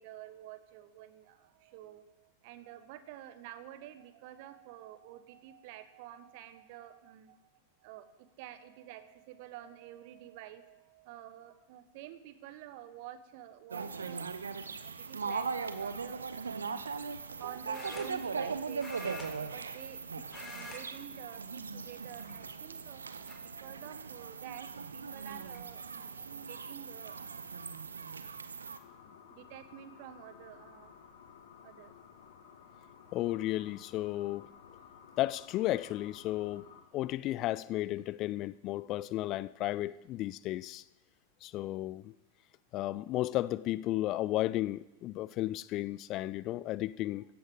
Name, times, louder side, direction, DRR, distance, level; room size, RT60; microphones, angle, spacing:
voice 1, 0.0-7.5 7.8-16.6 17.4-28.5 29.0-30.9 31.6-31.9, right 12 dB, 50° right, 1.2 m, -50 dB
sound 1, 13.7-28.8, right 5 dB, 75° right, 0.8 m, -39 dB
sound 2, 15.8-16.1 17.7-18.5 18.8-20.0 20.2-20.8 21.1-21.4 22.1-22.7 23.3-23.4 24.8-24.9 25.2-25.6, left 3 dB, 20° left, 3.7 m, -47 dB
sound 3, 28.7-36.8, left 7 dB, 60° left, 1.7 m, -55 dB
voice 2, 33.1-34.5 35.2-36.7 36.9-40.8 41.4-42.1 42.7-47.2, left 15 dB, 35° left, 0.3 m, -33 dB
16.0 x 14.0 x 3.7 m
figure-of-eight pair, 90°, 0 cm